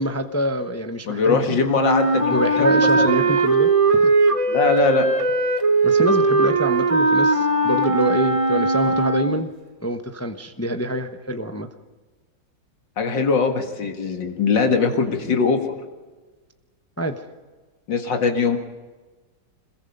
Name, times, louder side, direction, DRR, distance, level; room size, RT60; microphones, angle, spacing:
voice 1, 0.0-1.4 2.3-4.1 5.8-9.5 9.8-11.7 17.0-17.2, equal, 15° left, 7 dB, 0.5 m, -25 dB
voice 2, 1.1-3.3 4.5-5.1 13.0-15.7 17.9-18.6, left 4 dB, 70° left, 4 dB, 2.6 m, -21 dB
Wind instrument woodwind instrument, 1.7-9.5, right 3 dB, 30° right, 0.5 m, -19 dB
26.0 x 21.5 x 5.4 m, 1.3 s
omnidirectional pair, 2.1 m